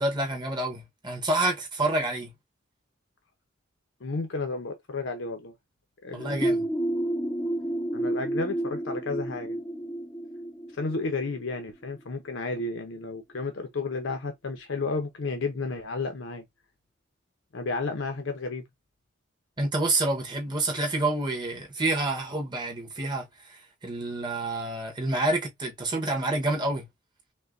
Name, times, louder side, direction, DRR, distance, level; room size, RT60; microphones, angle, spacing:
voice 1, 0.0-2.3 6.1-6.7 19.6-26.9, right 2 dB, 25° right, 1.0 m, -28 dB
voice 2, 4.0-5.5 6.0-6.6 7.9-9.6 10.7-16.4 17.5-18.6, left 3 dB, 75° left, 0.7 m, -32 dB
sound 1, 6.4-12.0, right 1 dB, 10° left, 0.5 m, -30 dB
5.4 x 2.2 x 2.5 m
head